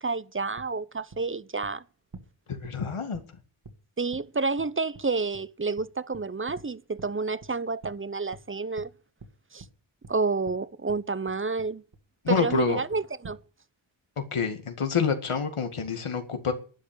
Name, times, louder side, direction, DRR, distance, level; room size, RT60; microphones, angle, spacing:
voice 1, 0.0-1.8 4.0-8.9 9.5-9.6 10.1-11.8 12.3-13.4, right 4 dB, 25° right, 0.7 m, -29 dB
sound 1, 0.6-0.7 1.1-1.2 1.6-1.7 2.1-2.3 2.6-2.8 3.1-3.2 3.6-3.8 4.1-4.2 4.6-4.7 4.9-5.0 5.3-5.4 5.8-5.9 6.1-6.7 7.0-7.1 7.4-7.5 7.8-8.0 8.3-8.4 8.8-8.9 9.2-9.3 9.6-9.7 10.0-10.1 10.5-10.6 10.9-11.0 11.3-11.7 11.9-12.0 12.2-12.7 12.9-13.4, right 3 dB, 50° right, 2.1 m, -46 dB
voice 2, 2.5-3.2 12.2-12.8 14.3-16.5, left 5 dB, 85° left, 2.2 m, -27 dB
11.5 x 10.5 x 6.8 m
wide cardioid pair, 65°, 49 cm